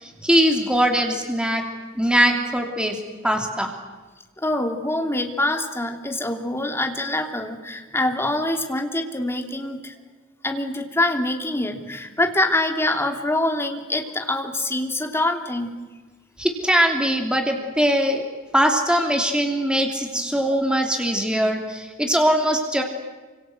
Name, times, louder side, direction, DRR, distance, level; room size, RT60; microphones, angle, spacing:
voice 1, 0.0-1.6 2.0-2.9 3.2-3.7 16.4-18.2 18.5-22.8, equal, 5° right, 2 dB, 3.0 m, -21 dB
voice 2, 4.4-9.9 10.4-15.7, left 1 dB, 10° left, 3 dB, 3.1 m, -25 dB
28.5 x 26.0 x 7.9 m, 1.3 s
head